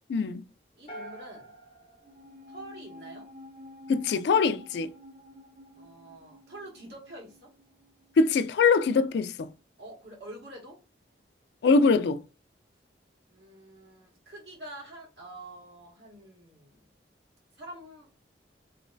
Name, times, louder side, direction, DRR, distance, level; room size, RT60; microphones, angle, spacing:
voice 1, 0.1-0.4 3.9-4.9 8.2-9.5 11.6-12.2, left 4 dB, 75° left, 0.3 m, -23 dB
voice 2, 0.8-1.5 2.5-3.3 5.8-7.5 9.8-10.8 13.3-16.8 17.5-18.1, right 1 dB, 80° right, 1.7 m, -46 dB
sound 1, 0.9-3.1, right 1 dB, 35° left, 1.0 m, -47 dB
sound 2, 2.0-8.6 8.9-9.0, left 1 dB, 50° right, 0.9 m, -50 dB
3.3 x 3.0 x 2.6 m
head